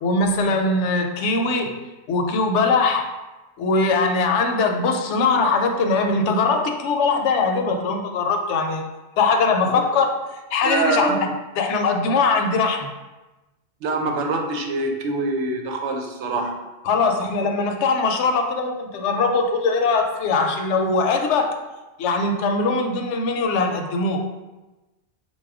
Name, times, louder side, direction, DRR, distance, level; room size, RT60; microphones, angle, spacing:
voice 1, 0.0-1.7 2.1-3.1 3.6-8.8 9.2-10.1 10.5-11.2 11.6-12.9 16.8-21.6 22.0-24.2, left 3 dB, 75° left, 4 dB, 0.9 m, -21 dB
voice 2, 10.6-11.3 13.8-16.5, right 2 dB, 75° right, 2 dB, 0.9 m, -24 dB
4.2 x 2.3 x 4.7 m, 1.1 s
omnidirectional pair, 1.2 m